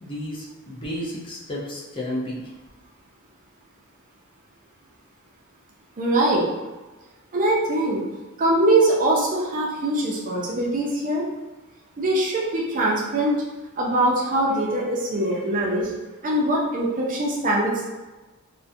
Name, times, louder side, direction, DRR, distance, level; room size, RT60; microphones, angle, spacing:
voice 1, 0.0-2.4, left 1 dB, 25° left, -5 dB, 0.5 m, -32 dB
voice 2, 6.0-6.5 7.3-8.0 8.4-11.2 12.0-13.3 13.8-15.9 16.2-17.9, right 1 dB, 40° right, -4 dB, 0.4 m, -22 dB
2.4 x 2.1 x 2.5 m, 1.2 s
head